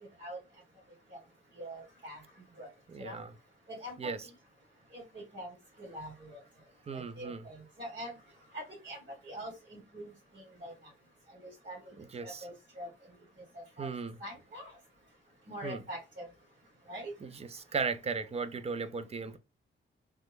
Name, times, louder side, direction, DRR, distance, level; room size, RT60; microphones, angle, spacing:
voice 1, 1.6-2.2 2.6-2.7 3.0-3.2 3.7-4.1 4.9-5.0 5.3-5.5 5.8-6.4 6.9-8.1 8.5-9.0 9.2-10.1 10.3-10.7 11.4-11.8 12.2-12.9 13.8-13.9 14.2-14.7 15.5-16.3 16.9-17.1, equal, 55° right, 1.8 m, -43 dB
voice 2, 2.9-3.3 4.0-4.3 6.9-7.4 12.0-12.5 13.8-14.2 15.6-15.8 17.2-19.4, right 5 dB, 30° right, 0.4 m, -36 dB
3.4 x 2.1 x 3.1 m
wide cardioid pair, 140°, 21 cm